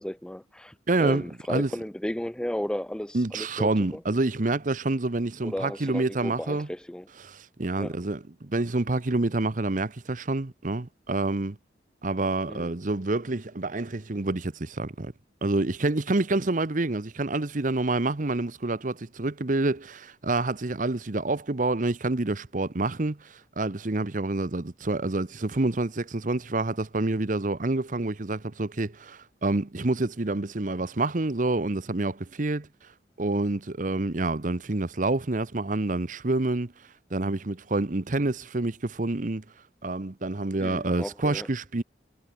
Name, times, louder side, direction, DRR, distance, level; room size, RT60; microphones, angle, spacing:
voice 1, 0.0-4.0 5.4-7.1 7.8-7.9 12.5-12.7 40.6-41.5, left 1 dB, 5° left, 0.3 m, -34 dB
voice 2, 0.9-1.2 1.5-1.7 3.1-6.7 7.2-11.6 12.0-15.1 15.4-32.7 33.2-36.7 37.1-39.4 39.8-41.8, right 2 dB, 45° right, 0.9 m, -27 dB
head